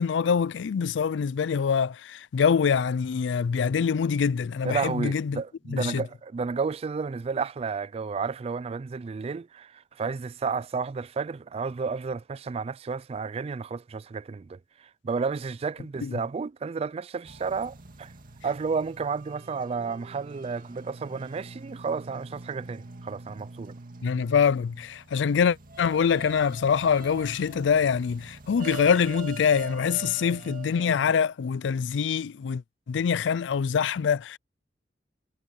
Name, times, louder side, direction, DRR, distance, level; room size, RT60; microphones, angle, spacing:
voice 1, 0.0-5.4 5.7-6.0 16.0-16.2 24.0-32.6 32.9-34.4, left 6 dB, 85° left, 0.4 m, -25 dB
voice 2, 4.6-14.6 15.0-18.1 18.4-23.8, right 5 dB, 35° right, 0.3 m, -32 dB
sound 1, 17.2-31.2, right 3 dB, 50° right, 2.2 m, -44 dB
head